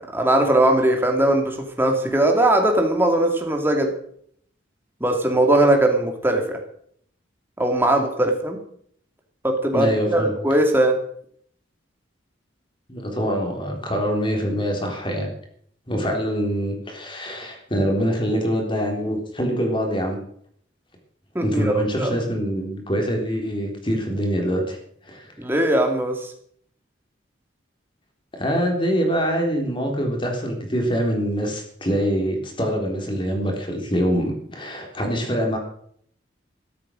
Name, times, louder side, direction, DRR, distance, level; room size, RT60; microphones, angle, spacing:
voice 1, 0.1-3.9 5.0-6.6 7.6-8.6 9.4-10.9 21.3-22.1 25.4-26.3, right 1 dB, 10° right, 3 dB, 2.6 m, -20 dB
voice 2, 9.7-10.3 12.9-15.3 15.9-20.2 21.4-24.8 25.1-25.3 28.3-35.6, equal, 25° left, 2 dB, 3.7 m, -24 dB
13.5 x 13.0 x 6.5 m, 0.63 s
head